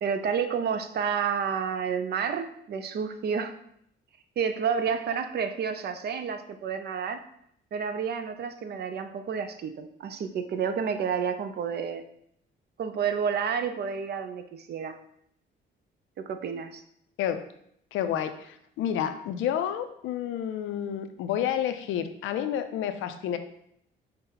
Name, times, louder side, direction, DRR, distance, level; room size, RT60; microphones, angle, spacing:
voice 1, 0.0-3.5 4.4-7.2 7.7-12.0 12.8-15.0 16.2-16.8, right 6 dB, 55° right, 9 dB, 0.5 m, -30 dB
voice 2, 17.9-23.4, left 10 dB, 85° left, 9 dB, 0.4 m, -30 dB
5.5 x 2.1 x 3.9 m, 0.72 s
cardioid pair, 90°, 20 cm